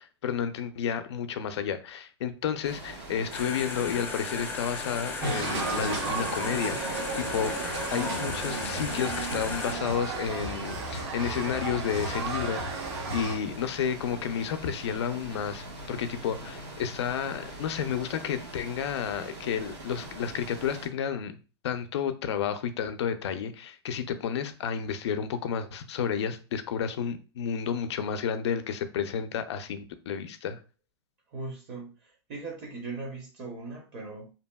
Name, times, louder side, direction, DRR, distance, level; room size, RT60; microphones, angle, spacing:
voice 1, 0.0-6.8 7.2-7.5 7.9-21.4 21.6-30.6, left 7 dB, 75° left, 0.5 m, -31 dB
sound 1, 2.6-20.9, right 1 dB, 80° right, 1.2 m, -43 dB
sound 2, 3.3-9.7, left 4 dB, 15° left, 0.5 m, -36 dB
sound 3, 5.2-13.4, right 3 dB, 65° right, 0.9 m, -33 dB
voice 2, 7.8-8.2 31.3-34.3, right 3 dB, 35° right, 0.7 m, -39 dB
2.8 x 2.6 x 2.2 m
hypercardioid pair, 145°, 15 cm